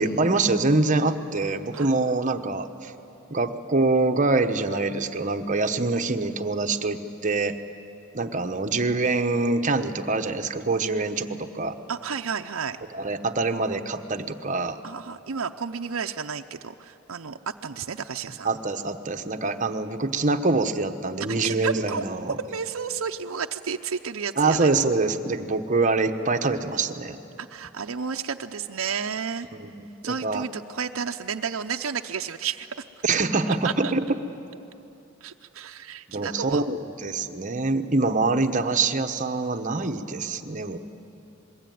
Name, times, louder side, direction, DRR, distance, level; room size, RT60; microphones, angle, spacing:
voice 1, 0.0-2.9 3.3-7.5 8.1-11.7 12.9-14.8 18.4-22.3 24.4-27.2 29.6-30.4 33.0-34.0 36.1-40.8, right 3 dB, 35° right, 7 dB, 1.1 m, -25 dB
voice 2, 11.9-12.8 14.8-18.5 21.4-22.0 22.4-24.7 27.4-29.5 30.0-32.8 33.6-33.9 35.2-36.7, right 6 dB, 75° right, 4 dB, 0.7 m, -32 dB
27.0 x 21.5 x 9.4 m, 2.9 s
head